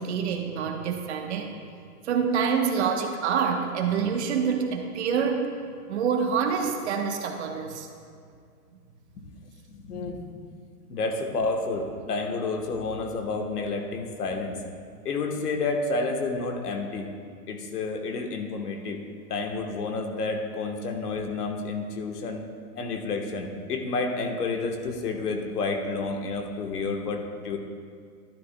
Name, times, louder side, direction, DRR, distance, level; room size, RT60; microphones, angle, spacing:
voice 1, 0.0-1.5 2.0-5.5 5.9-7.9, right 6 dB, 45° right, 3 dB, 1.0 m, -26 dB
voice 2, 9.7-10.2 10.9-14.6 15.0-17.1 17.5-19.0 19.3-22.5 22.7-27.6, left 3 dB, 75° left, 4 dB, 1.3 m, -30 dB
12.0 x 11.0 x 2.2 m, 2.2 s
hypercardioid pair, 145°, 47 cm